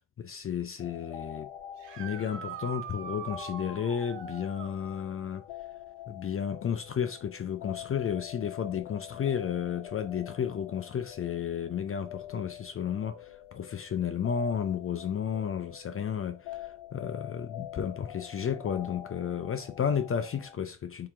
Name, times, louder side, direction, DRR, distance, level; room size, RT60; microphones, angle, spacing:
voice 1, 0.0-1.5 2.0-5.4 6.1-21.1, left 8 dB, 30° left, 0.4 m, -32 dB
sound 1, 0.8-20.6, left 11 dB, 80° left, 0.7 m, -46 dB
sound 2, 1.8-4.8 8.1-8.2 10.2-10.3 16.5-16.6, right 7 dB, 60° right, 1.4 m, -42 dB
3.6 x 2.8 x 4.7 m
cardioid pair, 90°, 50 cm